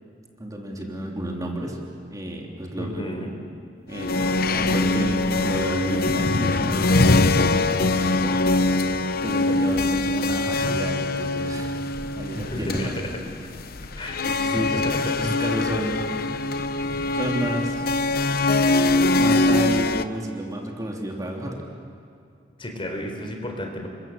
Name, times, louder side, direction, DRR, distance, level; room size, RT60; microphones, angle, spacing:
voice 1, 0.4-1.8 2.1-3.1 3.9-8.3 9.2-11.8 12.1-12.9 14.3-14.8 15.2-16.4 17.1-17.9 19.2-21.6, equal, 20° right, 0 dB, 3.1 m, -31 dB
voice 2, 2.8-3.3 10.6-10.8 12.4-13.1 14.0-15.3 22.6-23.9, equal, 30° left, 3 dB, 4.0 m, -32 dB
sound 1, 3.9-20.0, left 2 dB, 55° left, 0.9 m, -23 dB
29.5 x 24.5 x 7.5 m, 2.4 s
head